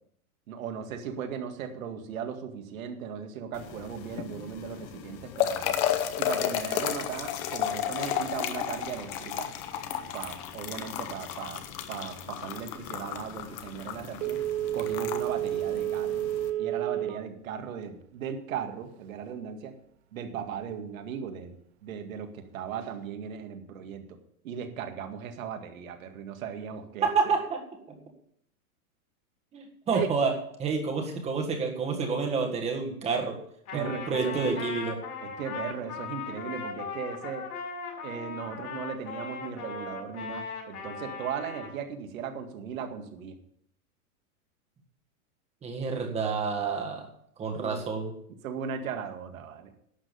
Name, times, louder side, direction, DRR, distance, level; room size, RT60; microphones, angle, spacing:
voice 1, 0.5-5.8 6.2-9.5 10.1-11.6 11.9-14.4 14.7-16.2 16.6-19.7 20.1-21.6 21.8-24.2 24.4-27.3 29.9-30.1 33.7-34.6 35.2-37.5 38.0-43.4 47.6-47.8 48.4-49.7, right 7 dB, 65° right, 6 dB, 2.1 m, -37 dB
sound 1, 3.5-16.5, left 10 dB, 25° left, 0.7 m, -33 dB
Telephone, 14.2-17.3 17.7-17.8, right 12 dB, 45° right, 0.7 m, -30 dB
voice 2, 27.0-27.6 29.5-30.3 30.6-33.3 33.7-35.0 45.6-47.1 47.4-48.1, right 5 dB, 15° right, 3 dB, 1.6 m, -29 dB
Trumpet, 33.7-41.8, left 5 dB, 80° left, 5.7 m, -38 dB
11.5 x 7.5 x 6.9 m, 0.68 s
supercardioid pair, 160°, 44 cm